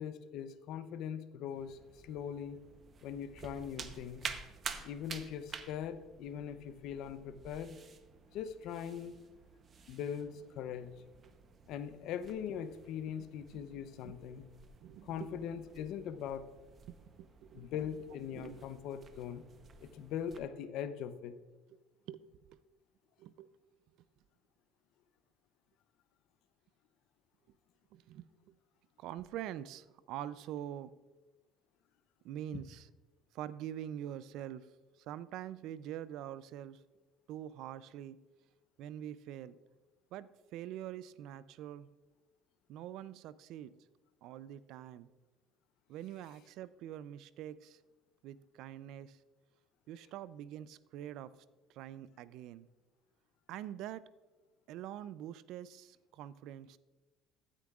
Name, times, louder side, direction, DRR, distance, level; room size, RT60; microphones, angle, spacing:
voice 1, 0.0-2.6 3.0-4.4 4.8-7.8 8.3-9.2 9.9-10.9 11.7-14.5 15.0-16.5 17.5-19.4 19.8-21.4 32.5-32.6, left 8 dB, 70° left, 11 dB, 0.6 m, -41 dB
sound 1, 1.5-20.4, right 5 dB, 40° right, 0.8 m, -51 dB
voice 2, 14.8-15.4 16.9-17.7 18.4-18.6 22.1-22.6 23.2-23.5 27.9-28.6 29.0-30.9 32.2-32.9 33.3-34.7 35.0-36.8 37.3-38.2 38.8-39.6 40.1-41.9 42.7-43.7 44.2-45.1 45.9-47.8 48.2-49.2 49.9-51.4 51.7-52.7 53.5-54.0 54.7-56.8, right 11 dB, 70° right, 17 dB, 0.4 m, -45 dB
14.5 x 9.8 x 2.4 m, 1.2 s
cardioid pair, 105°, 0 cm